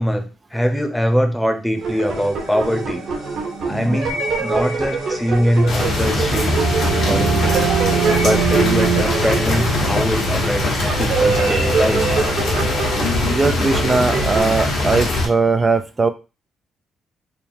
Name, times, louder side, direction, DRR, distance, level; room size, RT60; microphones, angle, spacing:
voice 1, 0.0-3.0 3.6-6.7 7.0-7.7 8.2-12.0, equal, 5° left, 5 dB, 0.8 m, -22 dB
sound 1, 1.7-14.6, right 4 dB, 65° right, 1.4 m, -24 dB
sound 2, 5.7-15.3, left 2 dB, 70° left, 1.4 m, -21 dB
sound 3, 5.9-11.5, right 10 dB, 85° right, 0.5 m, -25 dB
voice 2, 13.3-16.1, right 4 dB, 30° right, 7 dB, 0.4 m, -19 dB
3.6 x 2.2 x 4.4 m, 0.30 s
cardioid pair, 90°, 0 cm